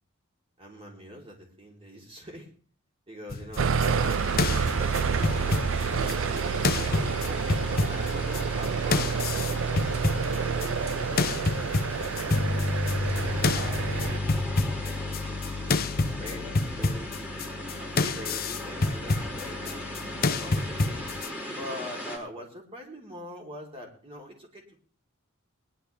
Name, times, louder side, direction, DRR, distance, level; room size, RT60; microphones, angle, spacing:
voice 1, 0.6-2.5 3.1-6.5 6.9-9.8 10.2-11.6 11.9-14.5 15.0-19.9 20.2-21.1 21.4-24.8, equal, 25° right, 0 dB, 3.4 m, -43 dB
sound 1, 3.3-6.4 6.6-8.7 8.9-10.9 11.2-21.3, left 3 dB, 45° left, 0.7 m, -28 dB
sound 2, 3.6-14.2, right 5 dB, 70° right, 0.5 m, -28 dB
sound 3, 3.8-22.2, left 1 dB, 5° right, 3.1 m, -39 dB
20.5 x 11.0 x 3.4 m, 0.42 s
head